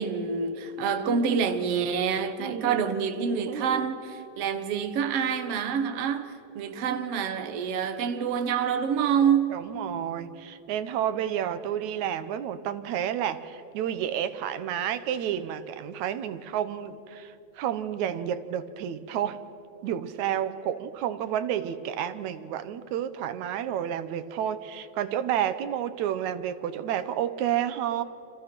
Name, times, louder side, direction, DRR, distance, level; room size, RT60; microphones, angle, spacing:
voice 1, 0.0-9.7, right 7 dB, 60° right, 2.1 m, -27 dB
voice 2, 2.4-2.9 3.5-3.9 9.5-19.4 19.8-28.0, right 10 dB, 80° right, 2.4 m, -30 dB
30.0 x 26.5 x 6.1 m
omnidirectional pair, 3.3 m